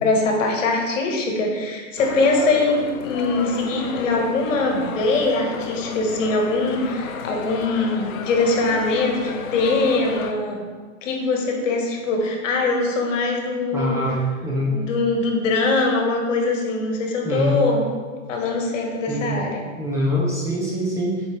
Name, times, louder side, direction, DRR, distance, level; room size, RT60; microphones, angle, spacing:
voice 1, 0.0-10.6 11.0-13.9 14.7-17.8 18.3-19.6, left 3 dB, 70° left, 1 dB, 1.7 m, -22 dB
sound 1, 2.0-10.3, left 6 dB, 85° left, 0.8 m, -33 dB
voice 2, 13.7-14.8 17.2-17.6 19.1-19.4 19.8-21.2, equal, 5° right, -6 dB, 0.9 m, -24 dB
7.1 x 5.2 x 3.4 m, 1.5 s
hypercardioid pair, 145°, 40 cm